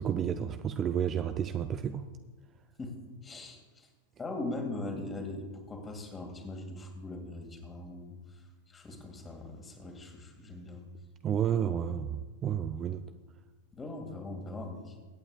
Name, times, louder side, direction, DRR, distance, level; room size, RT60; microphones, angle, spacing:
voice 1, 0.0-2.1 11.2-13.1, right 9 dB, 25° right, 9 dB, 0.4 m, -31 dB
voice 2, 2.8-3.9 4.2-8.4 8.7-10.8 13.7-15.0, left 2 dB, 15° left, 4 dB, 2.1 m, -41 dB
24.0 x 8.8 x 2.4 m, 1.3 s
figure-of-eight pair, 90°, 0 cm